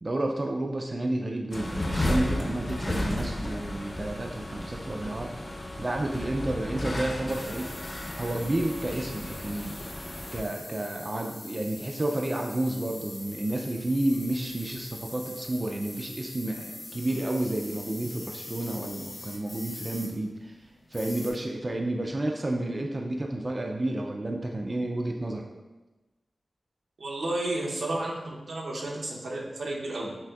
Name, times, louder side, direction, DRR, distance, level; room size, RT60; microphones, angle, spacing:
voice 1, 0.0-5.3 5.8-7.7 8.2-9.8 10.3-20.5 20.9-25.4, right 1 dB, 35° right, 1 dB, 0.3 m, -31 dB
sound 1, 1.5-10.4, left 1 dB, 35° left, 0.4 m, -33 dB
sound 2, 7.3-21.3, left 2 dB, 80° left, 0.8 m, -43 dB
voice 2, 27.0-30.1, right 2 dB, 85° right, -3 dB, 0.7 m, -32 dB
5.8 x 2.6 x 2.3 m, 1.1 s
wide cardioid pair, 100°, 0 cm